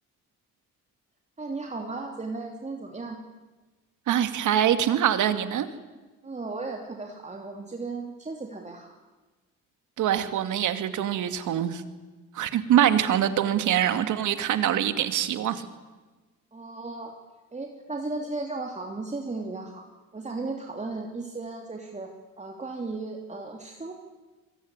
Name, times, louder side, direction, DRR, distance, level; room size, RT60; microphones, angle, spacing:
voice 1, 1.4-3.2 6.2-8.9 16.5-17.1 17.5-19.8 20.1-23.9, right 3 dB, 25° right, 2 dB, 3.0 m, -35 dB
voice 2, 4.1-5.7 10.0-11.8 12.3-15.7, right 10 dB, 80° right, 9 dB, 2.3 m, -24 dB
26.0 x 23.0 x 9.8 m, 1.3 s
cardioid pair, 90°, 30 cm